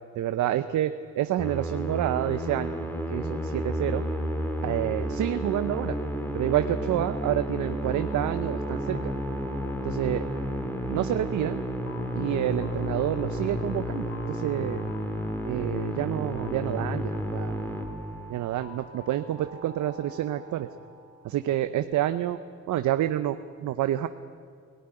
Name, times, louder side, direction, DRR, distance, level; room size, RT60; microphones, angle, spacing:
voice 1, 0.2-2.8 3.1-4.0 4.6-6.0 6.3-9.1 9.8-10.2 10.9-11.6 12.1-14.8 15.5-17.6 18.3-20.7 21.2-22.4 22.7-24.1, right 12 dB, 75° right, 10 dB, 0.8 m, -28 dB
Musical instrument, 1.4-18.5, equal, 5° left, 2.7 m, -31 dB
sound 1, 7.9-21.8, left 1 dB, 65° left, 2.8 m, -49 dB
18.5 x 18.5 x 10.0 m, 2.1 s
cardioid pair, 90°, 30 cm